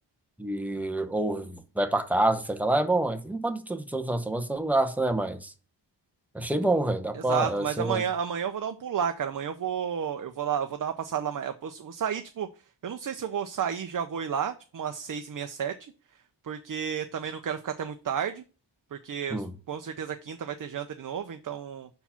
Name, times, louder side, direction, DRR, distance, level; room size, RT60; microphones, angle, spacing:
voice 1, 0.4-5.5 6.3-8.0 19.3-19.5, right 2 dB, 5° right, 0.8 m, -27 dB
voice 2, 7.1-12.5 12.8-15.9 16.4-18.4 18.9-21.9, right 8 dB, 50° right, 0.6 m, -32 dB
5.7 x 4.6 x 5.6 m
wide cardioid pair, 145°, 43 cm